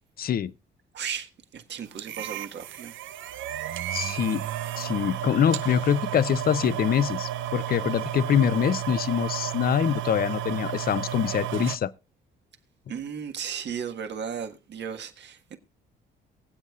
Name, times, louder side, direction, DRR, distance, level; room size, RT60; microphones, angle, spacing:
voice 1, 0.2-0.5 3.9-4.4 4.8-11.9, left 9 dB, 50° left, 0.6 m, -24 dB
voice 2, 0.9-2.9 12.9-15.6, right 7 dB, 60° right, 1.7 m, -35 dB
sound 1, 2.0-11.8, right 12 dB, 75° right, 0.6 m, -32 dB
23.5 x 8.1 x 2.4 m
cardioid pair, 90°, 20 cm